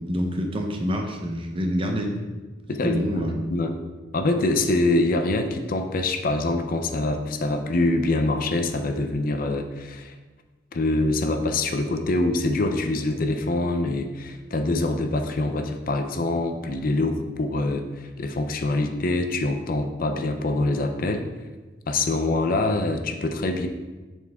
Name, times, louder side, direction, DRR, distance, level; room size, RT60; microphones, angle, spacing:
voice 1, 0.0-2.2 2.8-3.3, equal, 30° right, 2 dB, 0.7 m, -26 dB
voice 2, 2.7-3.7 4.1-10.1 10.7-21.2 21.9-23.7, left 2 dB, 50° left, 6 dB, 0.5 m, -25 dB
7.1 x 4.3 x 3.5 m, 1.2 s
head